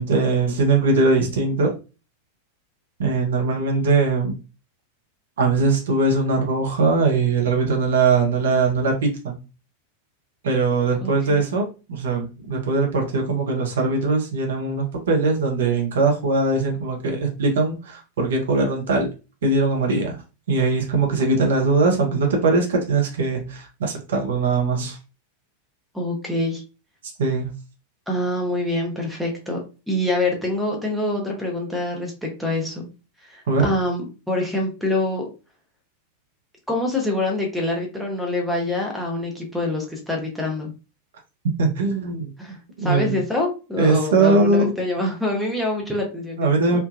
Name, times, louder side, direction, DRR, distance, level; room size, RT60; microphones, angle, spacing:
voice 1, 0.0-1.7 3.0-4.4 5.4-9.3 10.4-19.1 19.4-20.2 20.5-25.0 27.2-27.5 33.5-33.7 41.6-42.3 42.8-43.2 43.8-44.7 46.4-46.8, right 3 dB, 60° right, 1 dB, 0.7 m, -21 dB
voice 2, 11.0-11.4 25.9-26.6 28.1-32.9 33.2-35.3 36.7-40.7 42.4-46.8, left 2 dB, ahead, 0 dB, 0.9 m, -25 dB
3.2 x 2.2 x 2.5 m, 0.31 s
figure-of-eight pair, 90°, 0 cm